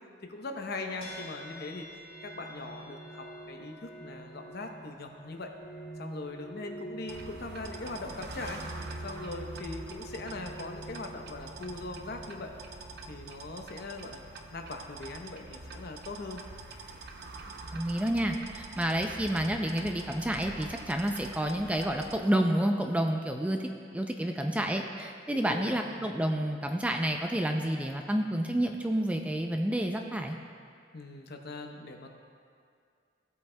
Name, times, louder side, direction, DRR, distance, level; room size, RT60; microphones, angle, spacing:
voice 1, 0.3-5.5 6.0-12.5 13.1-14.2 14.5-16.4 25.3-25.9 30.9-32.2, left 2 dB, 55° left, 3 dB, 0.8 m, -41 dB
sound 1, 1.0-14.5, right 1 dB, 30° left, 2.5 m, -47 dB
sound 2, 7.1-22.2, right 3 dB, 55° right, 0.6 m, -45 dB
voice 2, 17.7-30.4, right 1 dB, 5° right, 3 dB, 0.3 m, -29 dB
16.0 x 8.0 x 2.2 m, 2.2 s
head